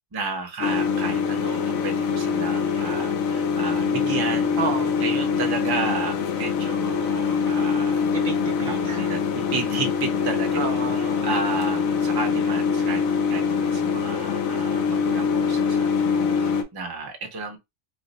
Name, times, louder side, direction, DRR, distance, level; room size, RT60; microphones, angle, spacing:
voice 1, 0.1-4.5 5.0-8.0 8.6-10.8 11.2-17.6, right 4 dB, 25° right, 0.5 m, -32 dB
sound 1, 0.6-16.6, left 5 dB, 90° left, 1.0 m, -24 dB
voice 2, 4.6-5.0 8.1-9.1 10.6-11.3, right 5 dB, 60° right, 0.7 m, -31 dB
3.2 x 2.0 x 4.0 m
omnidirectional pair, 1.4 m